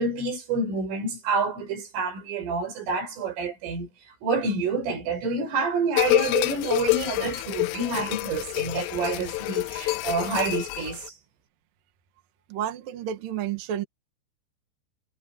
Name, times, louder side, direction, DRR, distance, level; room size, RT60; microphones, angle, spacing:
voice 1, 0.0-3.9 4.2-11.1, right 3 dB, 80° right, 8.4 m, -28 dB
sound 1, 6.0-11.1, left 22 dB, 90° left, 3.4 m, -27 dB
voice 2, 12.5-13.8, right 10 dB, 55° right, 2.9 m, -30 dB
omnidirectional pair, 5.7 m